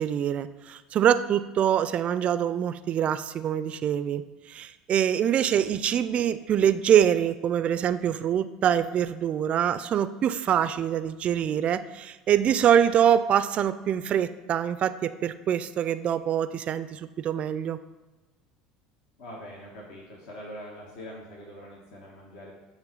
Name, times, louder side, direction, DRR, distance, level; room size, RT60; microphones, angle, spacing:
voice 1, 0.0-17.8, right 9 dB, 45° right, 13 dB, 0.3 m, -24 dB
voice 2, 19.2-22.5, equal, 70° left, -2 dB, 1.3 m, -43 dB
7.4 x 3.1 x 5.3 m, 1.1 s
hypercardioid pair, 85°, 3 cm